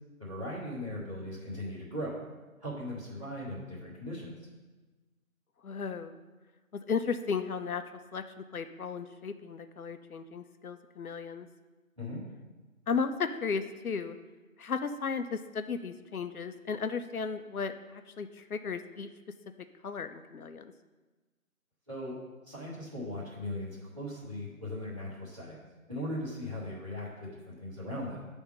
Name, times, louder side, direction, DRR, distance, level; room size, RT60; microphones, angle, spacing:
voice 1, 0.2-2.2 2.6-4.3 12.0-12.2 21.9-22.1 22.4-25.6 25.9-28.3, left 1 dB, 25° right, -12 dB, 1.3 m, -38 dB
voice 2, 5.6-6.2 6.7-7.8 8.1-11.5 12.9-14.2 14.6-19.1 19.8-20.7, left 5 dB, 80° left, 9 dB, 0.7 m, -35 dB
9.4 x 3.5 x 5.4 m, 1.2 s
figure-of-eight pair, 180°, 42 cm